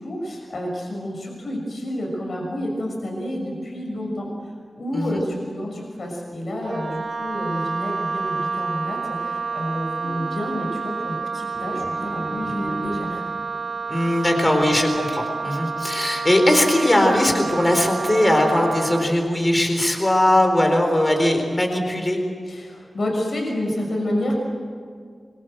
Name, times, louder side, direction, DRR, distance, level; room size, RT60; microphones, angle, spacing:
voice 1, 0.0-4.3 4.8-13.2 22.5-24.4, left 1 dB, 65° left, 0 dB, 6.2 m, -29 dB
Wind instrument woodwind instrument, 6.6-19.1, right 4 dB, 55° right, 0.8 m, -29 dB
sound 1, 11.5-13.6, equal, 5° left, 4.6 m, -36 dB
voice 2, 13.9-22.2, left 1 dB, 20° left, 3 dB, 4.1 m, -20 dB
25.0 x 24.0 x 7.9 m, 2.1 s
wide cardioid pair, 115°, 0 cm